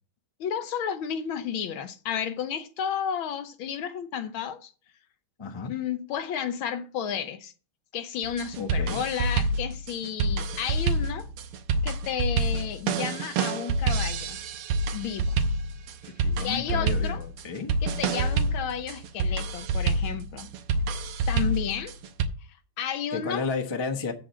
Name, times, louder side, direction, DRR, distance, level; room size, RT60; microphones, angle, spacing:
voice 1, 0.4-4.7 5.7-7.5 7.9-11.3 11.8-14.4 14.9-15.3 16.4-17.2 17.8-20.5 20.9-21.0 21.3-21.9 22.8-23.4, left 8 dB, 70° left, 1.5 m, -32 dB
voice 2, 5.4-5.7 8.6-9.0 16.2-17.7 23.1-24.1, left 4 dB, 20° left, 0.7 m, -32 dB
sound 1, 8.2-22.3, right 3 dB, 85° right, 1.7 m, -27 dB
7.9 x 5.0 x 7.2 m
omnidirectional pair, 2.4 m